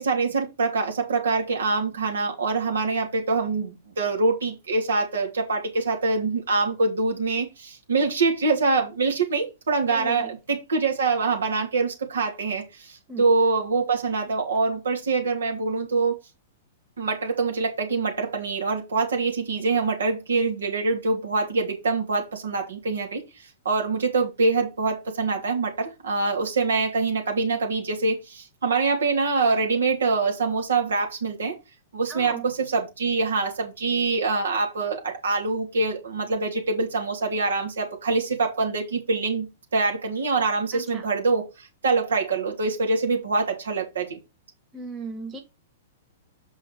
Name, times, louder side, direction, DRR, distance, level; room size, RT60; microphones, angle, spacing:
voice 1, 0.0-16.2 17.0-23.2 23.6-31.5 31.9-39.5 39.7-44.2, right 4 dB, 75° right, 3.0 m, -25 dB
voice 2, 9.9-10.3 13.1-13.3 32.1-32.5 40.7-41.1 44.7-45.4, right 3 dB, 25° right, 2.1 m, -36 dB
7.0 x 5.4 x 4.8 m
figure-of-eight pair, 110°, 0 cm